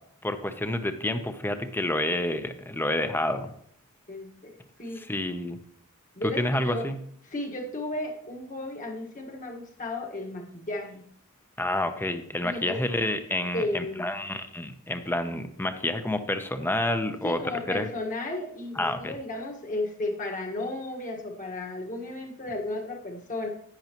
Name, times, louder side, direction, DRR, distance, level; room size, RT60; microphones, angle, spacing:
voice 1, 0.2-3.5 5.0-5.6 6.4-7.0 11.6-17.4 17.7-17.9 18.8-19.2, left 1 dB, 10° left, 8 dB, 0.7 m, -29 dB
voice 2, 4.1-4.5 4.8-5.0 6.1-6.9 7.2-11.0 12.4-12.8 13.5-14.1 17.2-23.5, left 2 dB, 40° left, 2 dB, 1.5 m, -34 dB
10.5 x 9.5 x 3.0 m, 0.63 s
head